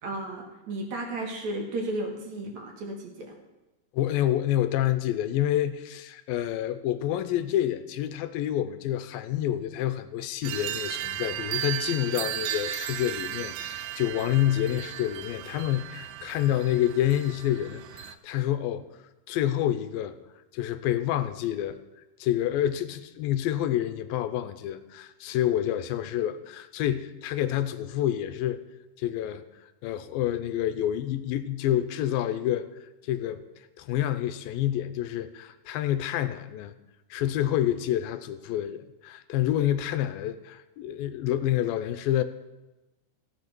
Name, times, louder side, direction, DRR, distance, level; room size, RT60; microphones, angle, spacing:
voice 1, 0.0-3.4, right 1 dB, 55° right, 2 dB, 2.9 m, -34 dB
voice 2, 3.9-18.8 19.3-20.2 20.5-21.8 22.2-28.6 29.0-29.4 29.8-32.7 33.0-33.4 33.8-36.7 37.1-42.2, left 12 dB, 85° left, 11 dB, 2.4 m, -28 dB
sound 1, 10.4-18.1, right 12 dB, 80° right, 2.2 m, -35 dB
14.5 x 8.7 x 6.1 m, 1.1 s
omnidirectional pair, 4.2 m